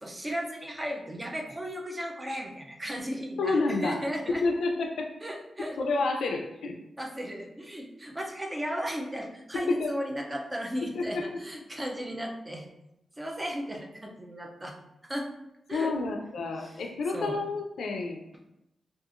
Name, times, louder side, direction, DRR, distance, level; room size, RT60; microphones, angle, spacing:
voice 1, 0.0-4.4 5.2-5.8 7.0-12.7 13.2-14.7 15.0-15.3 15.7-15.9 16.6-16.8 17.1-17.4, equal, 20° right, 1 dB, 0.4 m, -35 dB
voice 2, 3.4-5.1 5.8-6.8 9.5-9.9 10.8-11.5 15.7-18.2, left 3 dB, 90° left, 3 dB, 0.4 m, -29 dB
2.8 x 2.4 x 2.4 m, 0.87 s
wide cardioid pair, 100°, 0 cm